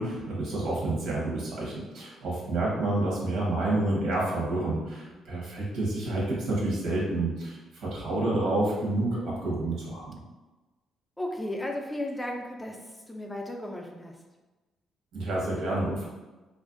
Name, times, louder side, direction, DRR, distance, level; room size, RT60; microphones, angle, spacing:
voice 1, 0.0-10.1 15.1-16.1, right 2 dB, 80° right, -4 dB, 0.8 m, -29 dB
voice 2, 1.6-1.9 5.0-5.2 11.2-14.2, left 1 dB, 10° left, 1 dB, 0.3 m, -35 dB
2.4 x 2.1 x 2.4 m, 1.2 s
cardioid pair, 90°, 0 cm